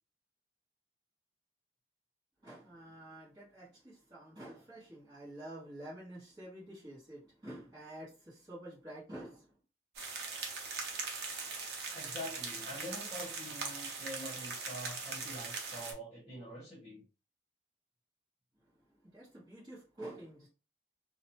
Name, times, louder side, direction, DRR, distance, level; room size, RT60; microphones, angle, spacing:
voice 1, 2.4-9.6 18.5-20.5, right 1 dB, 25° right, 1.1 m, -49 dB
sound 1, 9.9-15.9, right 4 dB, 65° right, 0.6 m, -40 dB
voice 2, 11.9-17.0, equal, 20° left, 1.1 m, -45 dB
2.6 x 2.1 x 2.9 m
head